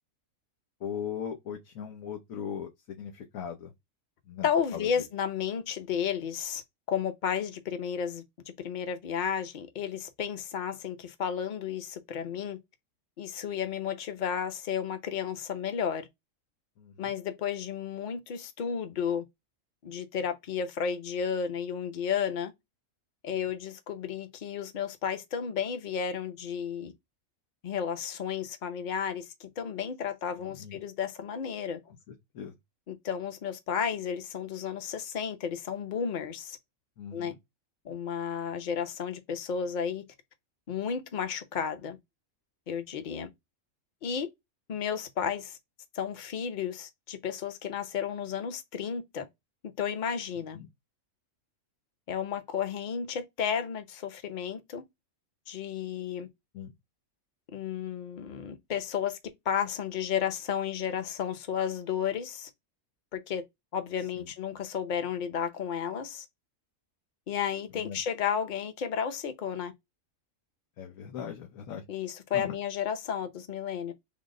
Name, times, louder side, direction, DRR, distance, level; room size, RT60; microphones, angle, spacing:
voice 1, 0.8-3.7 4.3-4.5 4.7-4.9 16.8-16.9 30.4-30.8 31.9-32.0 32.3-32.5 37.0-37.4 50.5-50.7 56.5-56.7 64.2-64.3 67.8-68.0 70.8-71.8 72.3-72.5, left 8 dB, 85° left, 1.2 m, -39 dB
voice 2, 4.4-6.6 6.9-8.2 8.6-12.6 13.2-16.1 17.0-19.2 19.8-22.5 23.2-26.9 27.6-31.8 32.9-36.6 37.1-37.3 37.8-40.0 40.7-42.0 42.7-43.3 44.0-44.3 44.7-45.6 45.9-49.3 49.8-50.6 52.1-54.8 55.5-56.3 57.5-59.2 59.5-62.5 63.1-63.4 63.7-66.3 67.3-69.7 71.9-73.9, left 7 dB, 45° left, 0.7 m, -32 dB
3.8 x 2.0 x 3.6 m
omnidirectional pair, 1.4 m